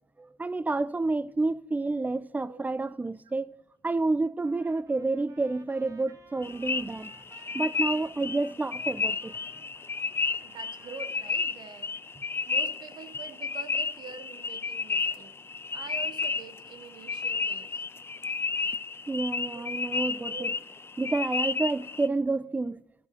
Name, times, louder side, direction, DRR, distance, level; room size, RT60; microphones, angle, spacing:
voice 1, 0.4-3.5 3.8-7.1 7.5-9.3 19.1-20.5 21.0-22.8, right 3 dB, 20° right, 0.6 m, -29 dB
voice 2, 2.5-2.9 6.8-7.2 10.4-12.0 12.5-15.4 15.7-17.8 19.5-20.5, right 5 dB, 70° right, 1.0 m, -46 dB
Trumpet, 4.4-11.5, right 4 dB, 45° right, 1.9 m, -57 dB
sound 1, 6.4-22.1, left 4 dB, 30° left, 0.6 m, -32 dB
14.5 x 6.4 x 5.9 m
supercardioid pair, 55°, 8 cm